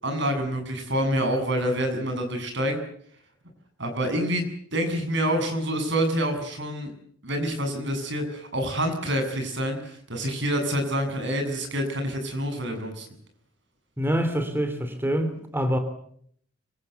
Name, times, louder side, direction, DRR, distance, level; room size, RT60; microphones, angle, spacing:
voice 1, 0.0-2.8 3.8-6.9 7.2-13.1, equal, 60° right, 6 dB, 7.5 m, -27 dB
voice 2, 14.0-15.8, equal, 10° right, 8 dB, 2.9 m, -25 dB
26.0 x 25.0 x 8.1 m, 0.64 s
head